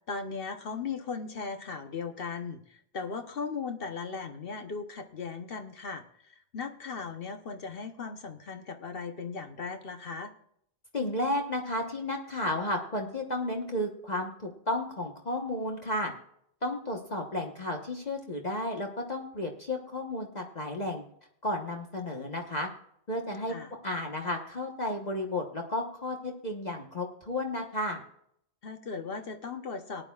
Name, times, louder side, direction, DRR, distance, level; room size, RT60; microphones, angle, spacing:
voice 1, 0.1-10.3 23.5-23.7 28.6-30.0, left 5 dB, 60° left, 7 dB, 1.1 m, -37 dB
voice 2, 10.9-16.1 16.6-21.0 21.4-22.7 23.1-23.5 23.8-28.0, left 1 dB, 40° left, 2 dB, 1.3 m, -33 dB
19.0 x 10.5 x 2.4 m, 0.69 s
omnidirectional pair, 1.1 m